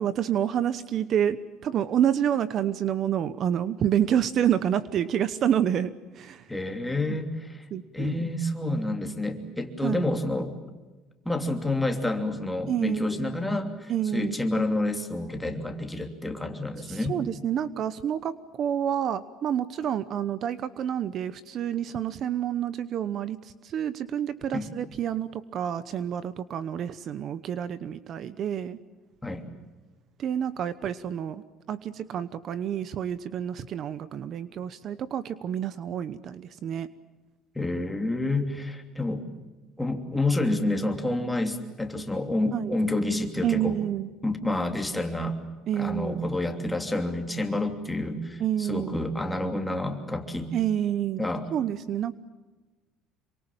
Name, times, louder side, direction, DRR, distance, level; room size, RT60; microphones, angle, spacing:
voice 1, 0.0-6.4 7.7-8.3 9.8-10.1 12.7-13.2 13.9-14.4 16.9-23.4 23.6-28.8 30.2-36.9 42.5-42.7 43.4-44.1 45.7-46.2 48.4-48.9 50.5-51.2 51.5-52.1, right 9 dB, 45° right, 15 dB, 1.0 m, -28 dB
voice 2, 6.5-7.6 7.9-10.6 11.2-17.2 24.5-24.7 29.2-29.5 37.5-39.3 39.8-43.8 44.2-45.4 45.7-50.5 51.2-51.5, left 2 dB, 5° left, 4 dB, 3.0 m, -29 dB
27.0 x 24.0 x 7.3 m, 1.2 s
cardioid pair, 140°, 0 cm